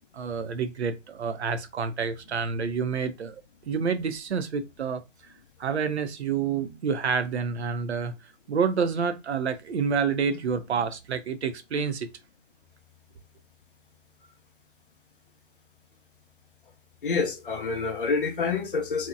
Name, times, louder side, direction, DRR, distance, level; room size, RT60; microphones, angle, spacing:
voice 1, 0.1-3.4 3.7-5.0 5.6-8.1 8.5-12.1, right 6 dB, 60° right, 0.5 m, -28 dB
voice 2, 17.0-19.1, left 4 dB, 45° left, 0.5 m, -27 dB
2.8 x 2.1 x 2.3 m
figure-of-eight pair, 135°, 38 cm